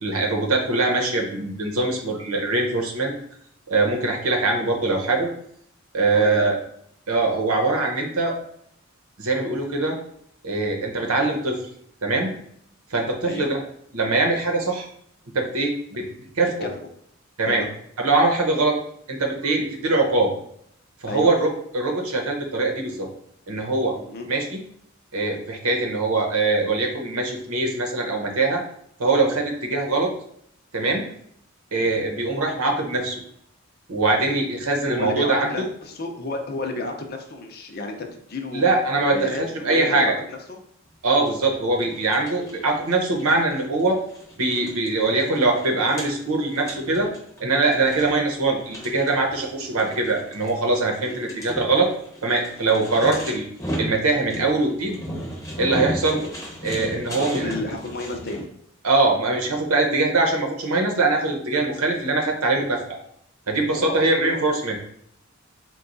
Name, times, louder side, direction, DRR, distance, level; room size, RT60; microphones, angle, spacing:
voice 1, 0.0-3.1 3.7-5.3 5.9-6.6 7.1-8.3 9.2-10.0 10.4-11.6 12.0-12.3 12.9-13.6 13.9-14.9 15.3-16.1 16.4-16.5 17.4-17.6 18.0-18.8 19.1-20.3 21.0-23.1 23.5-23.9 24.3-24.6 25.1-28.6 29.0-30.1 30.7-31.1 31.7-33.2 33.9-35.7 38.5-40.1 41.0-44.0 44.4-47.1 47.4-51.9 52.2-53.5 53.8-55.0 55.6-56.2 56.6-57.5 58.8-62.8 63.5-64.8, right 3 dB, 90° right, 1 dB, 0.9 m, -22 dB
voice 2, 6.1-6.5 13.2-13.5 16.6-16.9 17.4-17.7 21.1-21.3 23.9-24.3 34.9-38.6 39.1-40.6 51.1-51.4 57.1-58.5 63.8-64.5, left 2 dB, 45° left, 3 dB, 0.6 m, -32 dB
sound 1, 41.3-58.5, equal, 15° left, 0.8 m, -36 dB
4.6 x 2.3 x 3.9 m, 0.69 s
head